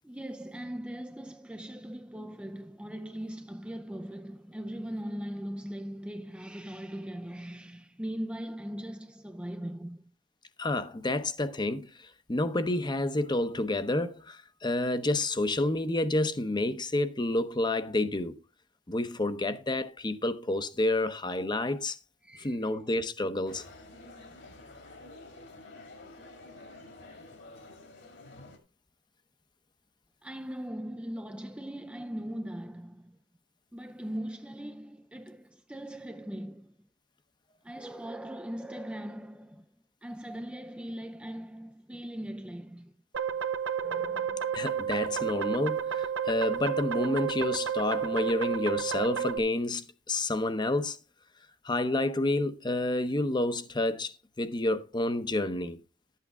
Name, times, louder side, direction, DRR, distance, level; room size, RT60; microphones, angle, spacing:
voice 1, 0.0-10.0 22.2-22.7 30.2-33.1 33.7-36.7 37.6-39.6 40.0-42.9 43.8-44.5 46.9-47.3, equal, 5° right, 0.4 m, -40 dB
voice 2, 10.6-18.4 18.9-22.0 22.4-23.6 44.5-51.0 51.6-55.8, left 2 dB, 25° left, 0.7 m, -29 dB
sound 1, 23.5-28.6, left 2 dB, 60° left, 2.1 m, -49 dB
sound 2, 43.1-49.4, right 8 dB, 75° right, 0.8 m, -31 dB
11.5 x 8.4 x 3.6 m
head